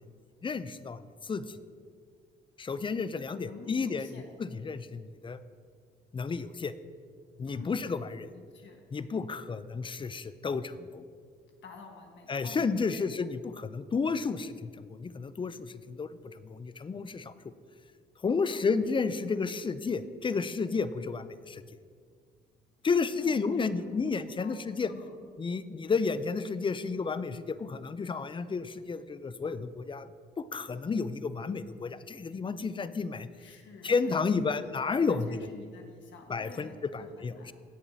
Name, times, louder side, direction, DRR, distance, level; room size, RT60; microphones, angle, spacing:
voice 1, 0.4-1.6 2.6-4.1 4.4-5.4 6.1-6.7 7.4-8.3 8.9-11.0 12.3-17.5 18.2-21.6 22.8-24.9 25.4-30.1 30.4-33.3 33.8-35.4 36.3-37.5, left 4 dB, 25° left, 14 dB, 0.4 m, -32 dB
voice 2, 3.5-4.3 7.5-7.8 8.3-8.8 11.6-13.1 18.5-18.6 23.2-24.1 24.4-25.2 33.4-34.6 35.0-37.5, left 4 dB, 65° left, 2 dB, 1.4 m, -49 dB
17.0 x 7.0 x 2.8 m, 2.1 s
cardioid pair, 90°, 20 cm